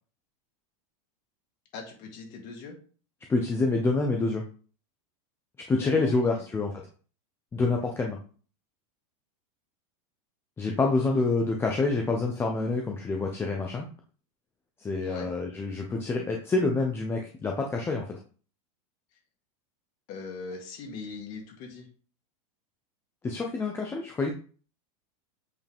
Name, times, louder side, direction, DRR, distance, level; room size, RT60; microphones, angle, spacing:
voice 1, 1.7-2.8 5.8-6.1 6.4-6.5 11.1-11.2 15.0-15.3 20.1-21.9, left 4 dB, 45° left, 1 dB, 2.6 m, -40 dB
voice 2, 3.3-4.4 5.7-6.7 7.5-8.2 10.6-13.9 14.8-18.1 23.2-24.3, left 3 dB, 15° left, 1 dB, 0.8 m, -27 dB
8.1 x 4.8 x 3.6 m, 0.40 s
supercardioid pair, 150°, 18 cm